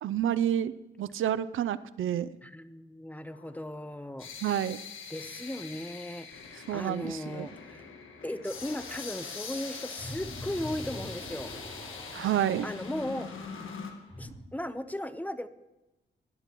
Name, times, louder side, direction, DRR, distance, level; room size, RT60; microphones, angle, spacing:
voice 1, 0.0-0.7 1.0-2.3 4.4-4.8 6.7-7.5 12.1-12.7, right 10 dB, 85° right, 16 dB, 0.5 m, -29 dB
voice 2, 2.4-4.3 5.1-7.9 8.2-11.5 12.6-13.3 14.2-15.5, left 1 dB, 10° left, 12 dB, 0.8 m, -37 dB
sound 1, 3.3-13.9, left 5 dB, 85° left, 1.6 m, -43 dB
sound 2, 8.5-14.3, equal, 30° left, 4.5 m, -45 dB
19.0 x 11.5 x 3.0 m, 1.0 s
cardioid pair, 70°, 20 cm